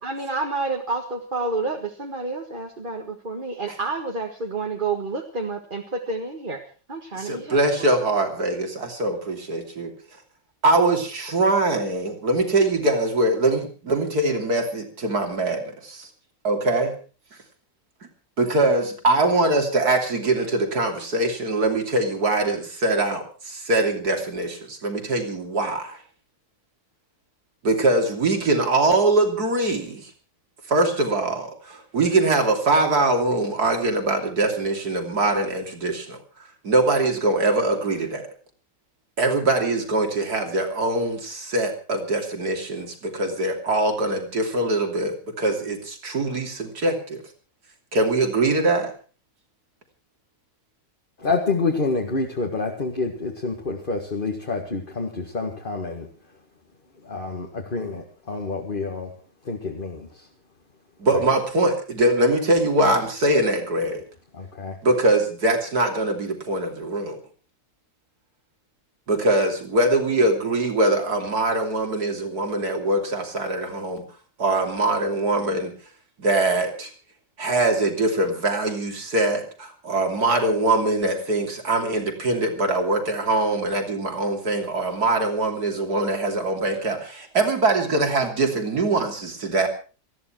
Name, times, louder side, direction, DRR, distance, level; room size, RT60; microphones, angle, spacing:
voice 1, 0.0-6.6 6.9-7.9, right 3 dB, 30° right, 2 dB, 1.8 m, -29 dB
voice 2, 7.1-9.9 10.6-16.1 16.4-16.9 18.4-26.0 27.6-30.1 30.7-36.2 36.6-38.2 39.2-47.2 47.9-48.9 61.0-64.0 64.8-67.2 69.1-74.0 74.4-75.7 76.2-76.9 77.4-89.7, right 2 dB, 60° right, 4 dB, 3.5 m, -22 dB
voice 3, 51.2-56.1 57.1-59.1 59.5-60.1 61.1-61.2 64.3-64.8, left 3 dB, 30° left, 2 dB, 2.0 m, -27 dB
19.5 x 14.5 x 4.6 m, 0.37 s
omnidirectional pair, 1.9 m